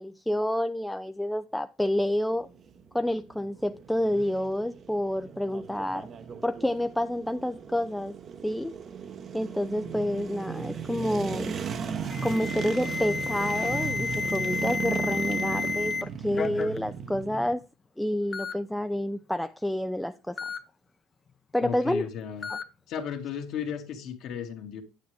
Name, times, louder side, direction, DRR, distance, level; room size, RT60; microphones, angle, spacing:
voice 1, 0.0-2.5 2.9-6.1 6.4-8.1 8.4-8.7 9.3-11.6 12.2-17.6 18.0-20.4 21.5-22.0 22.5-22.6, left 1 dB, 5° left, 0.3 m, -29 dB
sound 1, 2.3-17.5, right 6 dB, 40° right, 0.8 m, -36 dB
Alarm, 12.0-16.0 16.3-16.8 17.6-17.7 18.3-18.5 20.4-20.6 22.4-22.6, left 5 dB, 25° left, 0.7 m, -32 dB
voice 2, 21.6-22.5 22.9-24.8, left 8 dB, 60° left, 1.8 m, -35 dB
9.4 x 7.7 x 3.3 m
cardioid pair, 115°, 0 cm